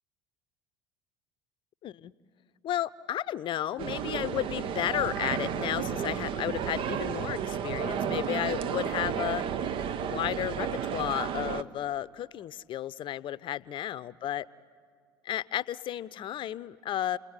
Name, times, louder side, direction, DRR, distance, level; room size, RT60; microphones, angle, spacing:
voice 1, 1.8-2.1 2.6-9.4 10.0-14.5 15.2-17.2, left 12 dB, 50° left, 18 dB, 0.7 m, -33 dB
sound 1, 3.8-11.6, right 8 dB, 55° right, 0.9 m, -32 dB
29.5 x 20.5 x 9.8 m, 2.1 s
hypercardioid pair, 70°, 11 cm